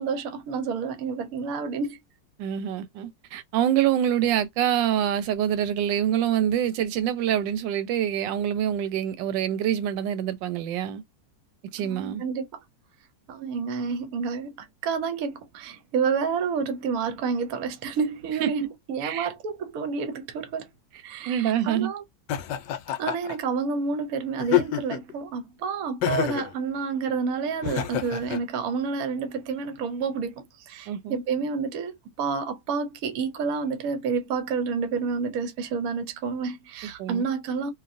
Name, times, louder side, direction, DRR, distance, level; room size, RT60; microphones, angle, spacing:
voice 1, 0.0-2.0 11.8-12.5 13.3-20.7 21.0-22.0 23.0-37.7, right 5 dB, 65° right, 1.0 m, -29 dB
voice 2, 2.4-11.0 11.7-12.2 18.4-18.5 19.0-19.3 21.3-21.9 30.9-31.2 37.0-37.3, right 10 dB, 90° right, 1.3 m, -25 dB
Laughter, 22.3-23.4 24.4-25.1 26.0-26.5 27.6-28.4, left 12 dB, 75° left, 1.2 m, -27 dB
2.9 x 2.6 x 2.5 m
omnidirectional pair, 1.9 m